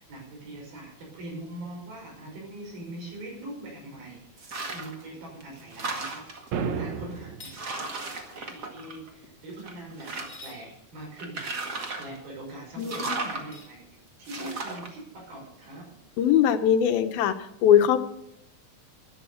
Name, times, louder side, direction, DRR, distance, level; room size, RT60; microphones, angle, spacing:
voice 1, 0.0-11.6 12.0-16.0, right 1 dB, 80° right, 0 dB, 7.6 m, -42 dB
sound 1, 4.4-5.0 5.4-6.5 7.1-7.2 7.5-9.2 9.6-10.5 11.2-12.2 12.8-13.4 14.2-14.9, right 3 dB, 35° right, 1.9 m, -35 dB
sound 2, 6.5-7.5, right 6 dB, 60° right, 2.1 m, -31 dB
sound 3, 7.3-7.6 10.1-10.6 13.4-13.8, left 2 dB, 20° left, 2.9 m, -46 dB
voice 2, 16.2-17.3 17.6-18.0, left 9 dB, 80° left, 9 dB, 2.8 m, -20 dB
12.5 x 11.5 x 7.1 m, 0.77 s
omnidirectional pair, 4.2 m